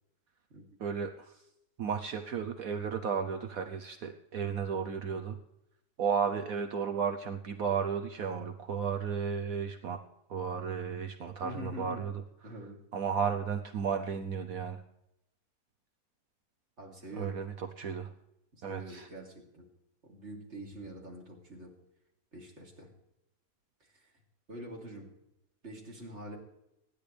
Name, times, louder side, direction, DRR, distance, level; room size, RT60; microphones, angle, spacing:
voice 1, 0.8-1.4 1.8-5.4 6.0-10.0 10.3-12.1 12.9-14.8 17.2-18.1 18.6-19.1, right 6 dB, 60° right, 6 dB, 1.2 m, -33 dB
voice 2, 11.4-12.1 12.4-12.8 16.8-17.5 18.5-19.7 20.0-21.7 22.3-22.9 23.8-24.1 24.5-25.1 25.6-26.4, equal, 40° right, -1 dB, 3.6 m, -45 dB
25.5 x 10.5 x 3.4 m, 0.83 s
omnidirectional pair, 1.8 m